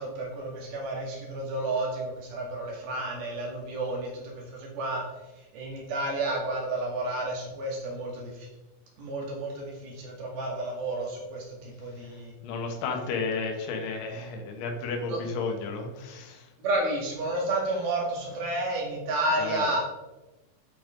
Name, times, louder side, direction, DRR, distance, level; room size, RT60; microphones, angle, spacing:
voice 1, 0.0-5.0 5.5-8.5 9.0-12.3 15.1-15.2 16.6-19.8, right 2 dB, 60° right, -1 dB, 3.8 m, -31 dB
voice 2, 11.8-12.2 12.4-16.5 19.4-19.7, left 4 dB, 85° left, 2 dB, 3.6 m, -33 dB
9.3 x 8.7 x 3.8 m, 1.1 s
omnidirectional pair, 5.2 m